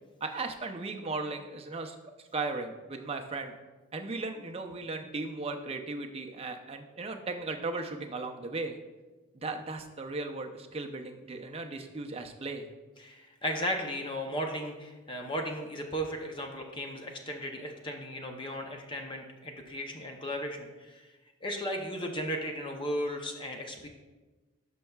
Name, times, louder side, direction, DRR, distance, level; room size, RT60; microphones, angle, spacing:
voice 1, 0.2-3.5 3.9-8.8 9.3-12.7, right 3 dB, 25° right, 4 dB, 0.5 m, -37 dB
voice 2, 13.0-21.1 21.4-23.9, equal, 20° left, 3 dB, 0.6 m, -35 dB
12.0 x 5.4 x 2.3 m, 1.2 s
head